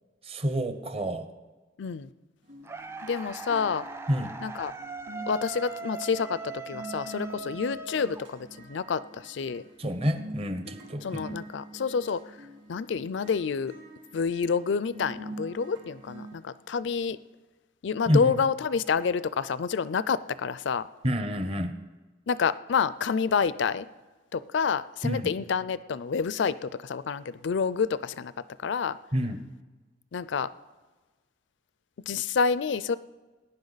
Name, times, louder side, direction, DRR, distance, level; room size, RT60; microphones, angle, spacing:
voice 1, 0.3-1.3 4.1-4.3 9.8-11.2 18.1-18.3 21.0-21.7 25.0-25.3 29.1-29.4, equal, 30° right, 9 dB, 0.8 m, -28 dB
voice 2, 1.8-2.1 3.0-3.8 4.4-4.7 5.3-9.6 11.0-12.2 12.7-13.7 14.1-17.2 17.8-20.9 22.3-23.9 24.3-28.3 28.6-29.0 30.1-30.5 32.1-33.0, left 5 dB, 65° left, 17 dB, 0.4 m, -28 dB
sound 1, 2.4-16.3, right 1 dB, 60° right, 4.6 m, -45 dB
sound 2, 2.6-8.7, right 4 dB, 15° right, 0.4 m, -40 dB
19.5 x 10.5 x 4.0 m, 1.3 s
head